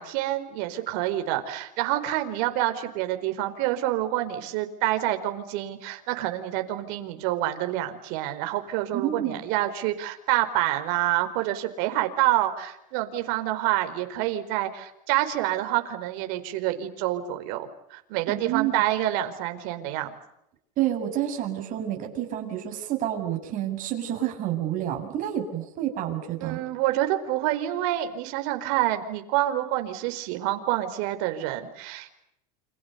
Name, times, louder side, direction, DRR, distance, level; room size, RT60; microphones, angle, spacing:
voice 1, 0.0-20.1 26.4-32.2, right 14 dB, 65° right, 8 dB, 4.7 m, -27 dB
voice 2, 8.9-9.4 18.3-18.8 20.8-26.6, right 11 dB, 45° right, 4 dB, 7.9 m, -29 dB
29.5 x 27.0 x 6.9 m, 0.82 s
supercardioid pair, 120°, 18 cm